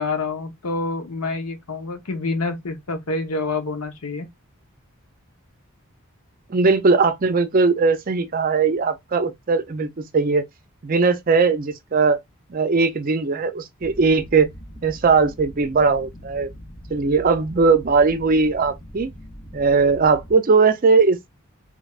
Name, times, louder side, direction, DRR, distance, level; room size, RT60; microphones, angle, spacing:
voice 1, 0.0-4.3, left 3 dB, 90° left, 0.9 m, -27 dB
voice 2, 6.5-10.4 10.8-12.2 12.5-14.5 14.8-16.5 16.9-19.1 19.5-21.3, right 4 dB, 40° right, 0.4 m, -19 dB
sound 1, 13.8-20.4, equal, 35° left, 0.7 m, -41 dB
3.4 x 3.3 x 2.4 m
head